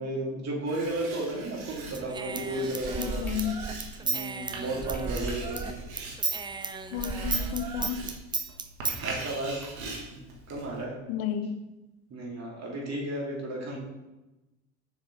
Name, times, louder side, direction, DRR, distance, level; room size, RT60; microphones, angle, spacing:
voice 1, 0.0-3.3 4.0-5.8 9.0-9.6 10.1-10.2 10.5-11.0 12.1-13.8, right 1 dB, 40° right, -3 dB, 2.5 m, -33 dB
Writing, 0.7-10.8, right 3 dB, 85° right, 1.4 m, -42 dB
Human voice / Scissors, 1.9-5.7 6.0-9.0, right 4 dB, 10° right, 0.4 m, -33 dB
voice 2, 3.0-3.6 6.9-8.0 11.1-11.6, left 9 dB, 65° left, 9 dB, 0.7 m, -32 dB
sound 1, 3.3-3.4 4.9-5.5 5.9-6.0 8.9-9.8, left 1 dB, 5° left, 2.2 m, -47 dB
6.6 x 6.3 x 3.1 m, 1.0 s
hypercardioid pair, 70°, 41 cm